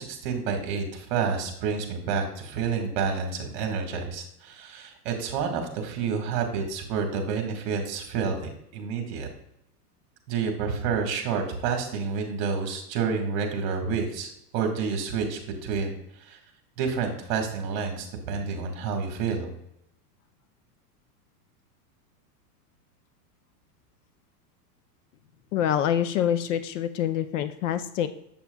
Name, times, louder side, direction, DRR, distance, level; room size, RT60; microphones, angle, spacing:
voice 1, 0.0-9.3 10.3-16.4 16.8-19.5, right 5 dB, 45° right, 4 dB, 1.6 m, -29 dB
voice 2, 25.5-28.1, left 10 dB, 50° left, 11 dB, 0.5 m, -26 dB
7.5 x 6.9 x 2.2 m, 0.80 s
supercardioid pair, 155°, 49 cm